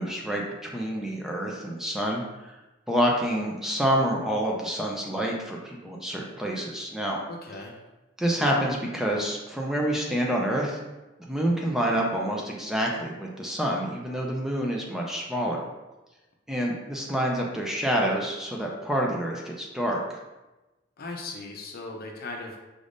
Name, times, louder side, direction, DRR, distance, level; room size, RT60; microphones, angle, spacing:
voice 1, 0.0-2.6 2.9-7.2 8.2-10.8 11.3-15.6 16.5-20.2, equal, ahead, -2 dB, 0.4 m, -27 dB
voice 2, 7.3-7.8 21.0-22.6, left 3 dB, 50° left, 1 dB, 0.6 m, -38 dB
5.1 x 3.3 x 2.5 m, 1.1 s
head